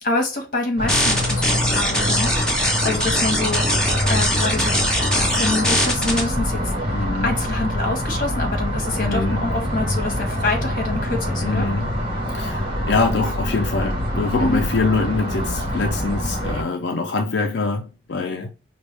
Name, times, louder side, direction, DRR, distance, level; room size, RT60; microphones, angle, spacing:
voice 1, 0.0-4.8 5.1-6.8 7.2-11.7 14.4-14.6, left 2 dB, 50° left, 1.3 m, -26 dB
sound 1, 0.8-16.6, equal, 30° right, 1.3 m, -25 dB
sound 2, 0.9-6.2, equal, 5° left, 1.6 m, -21 dB
voice 2, 6.9-7.4 9.0-9.4 11.4-11.9 12.3-18.5, left 3 dB, 85° left, 0.5 m, -24 dB
5.2 x 2.3 x 3.3 m
head